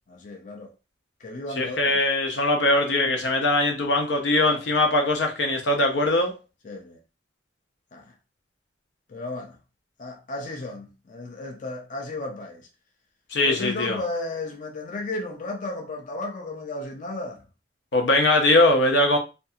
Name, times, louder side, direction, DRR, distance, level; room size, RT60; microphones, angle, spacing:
voice 1, 0.1-0.7 1.2-2.0 6.6-7.0 7.9-8.1 9.1-9.6 10.0-12.7 13.4-17.4, left 2 dB, 45° left, 0.5 m, -34 dB
voice 2, 1.6-6.3 13.3-14.0 17.9-19.2, left 2 dB, 90° left, 0.7 m, -21 dB
2.6 x 2.3 x 2.6 m
head